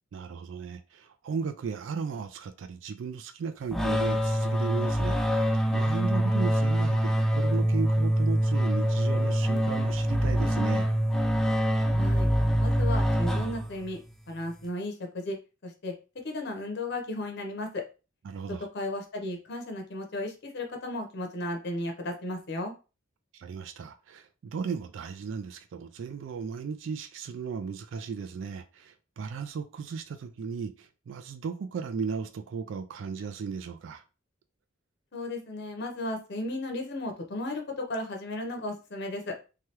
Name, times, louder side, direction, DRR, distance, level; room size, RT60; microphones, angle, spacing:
voice 1, 0.1-10.9 18.2-18.7 23.3-34.0, right 5 dB, 75° right, 0.3 m, -36 dB
sound 1, 3.7-14.0, equal, ahead, 0.4 m, -25 dB
voice 2, 11.9-12.3 12.6-14.0 14.3-15.4 15.6-15.9 16.2-17.8 18.7-22.7 35.1-39.3, left 1 dB, 60° left, 0.7 m, -34 dB
3.2 x 2.3 x 2.8 m
head